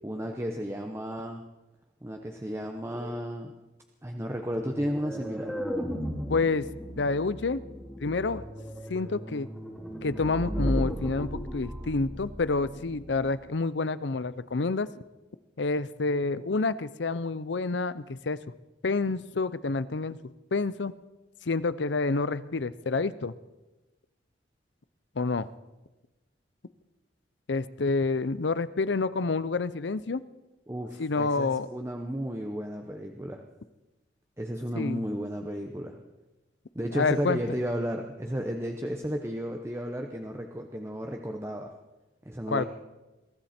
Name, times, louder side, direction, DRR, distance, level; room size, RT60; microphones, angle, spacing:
voice 1, 0.0-1.4 2.0-3.5 4.0-5.6 30.7-33.4 34.4-36.0 36.7-41.7 42.2-42.7, equal, 15° right, 3 dB, 0.9 m, -33 dB
sound 1, 4.5-13.3, equal, ahead, 2.2 m, -35 dB
voice 2, 6.3-6.7 7.0-7.6 8.0-8.4 8.9-9.5 10.0-14.9 15.6-18.4 18.8-20.2 20.5-20.9 21.5-23.3 25.2-25.5 27.5-30.2 31.0-31.7 34.7-35.0 36.9-37.4 42.5-42.6, left 3 dB, 75° left, 16 dB, 0.6 m, -28 dB
23.0 x 14.0 x 4.4 m, 1.1 s
head